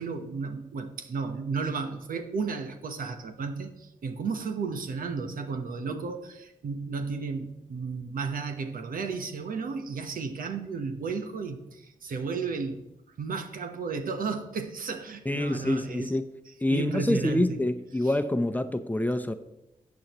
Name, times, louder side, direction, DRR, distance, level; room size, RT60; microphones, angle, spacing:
voice 1, 0.0-12.8 13.2-16.2 16.7-17.6 18.0-18.1, right 4 dB, 75° right, 6 dB, 1.1 m, -33 dB
voice 2, 15.3-16.2 16.6-19.3, left 1 dB, 10° left, 9 dB, 0.8 m, -26 dB
14.0 x 8.4 x 3.0 m, 0.93 s
cardioid pair, 50°, 15 cm